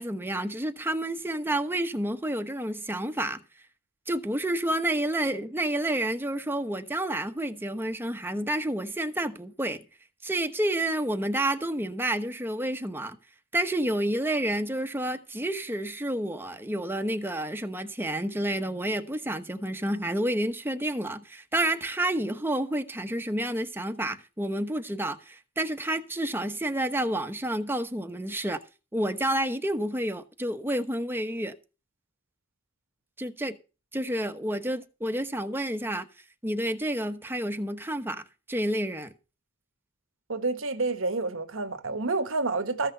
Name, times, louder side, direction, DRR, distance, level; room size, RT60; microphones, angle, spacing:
voice 1, 0.0-3.4 4.1-9.8 10.2-13.2 13.5-28.6 28.9-31.5 33.2-33.6 33.9-36.1 36.4-39.1, right 1 dB, 10° right, 1.1 m, -29 dB
voice 2, 40.3-42.9, right 3 dB, 70° right, 1.3 m, -29 dB
14.5 x 6.3 x 6.6 m
head